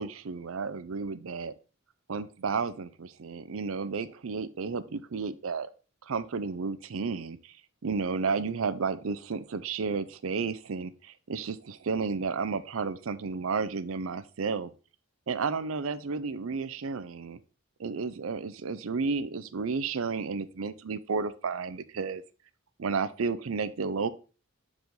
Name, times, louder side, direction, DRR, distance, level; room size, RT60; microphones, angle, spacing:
voice 1, 0.0-1.5 2.1-5.7 6.0-7.6 7.8-14.7 15.3-17.4 17.8-22.2 22.8-24.1, right 5 dB, 80° right, 0.5 m, -32 dB
6.8 x 4.9 x 3.8 m
head